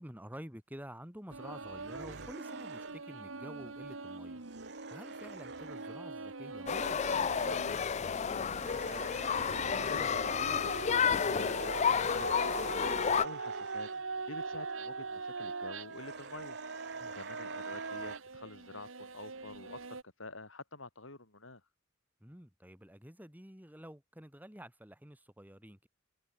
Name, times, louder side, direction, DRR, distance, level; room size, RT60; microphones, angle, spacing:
voice 1, 0.0-4.4 4.9-7.7 17.0-17.1 22.2-25.9, equal, 10° right, 4.7 m, -50 dB
sound 1, 1.3-20.0, right 4 dB, 80° right, 1.7 m, -42 dB
sound 2, 1.8-3.0 4.3-6.0 8.5-10.1 12.0-14.0 15.9-18.2, right 4 dB, 55° right, 5.4 m, -49 dB
sound 3, 6.7-13.2, left 7 dB, 35° left, 0.4 m, -31 dB
voice 2, 8.8-21.7, left 2 dB, 75° left, 5.1 m, -49 dB
head